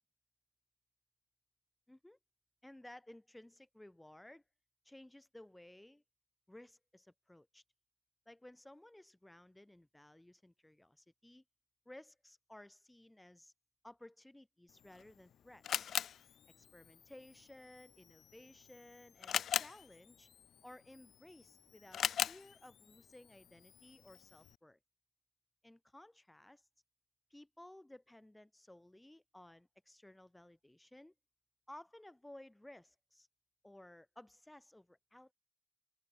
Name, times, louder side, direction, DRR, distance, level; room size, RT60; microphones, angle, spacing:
voice 1, 1.9-2.2 2.6-4.4 4.8-6.0 6.5-7.6 8.3-11.4 11.9-13.5 13.8-16.0 16.6-20.3 20.6-24.8 25.6-26.7 27.3-31.1 31.7-33.3 33.6-35.3, left 1 dB, 10° left, 3.6 m, -57 dB
Camera, 14.7-24.6, left 9 dB, 60° left, 0.4 m, -42 dB
open air
cardioid pair, 90°, 0 cm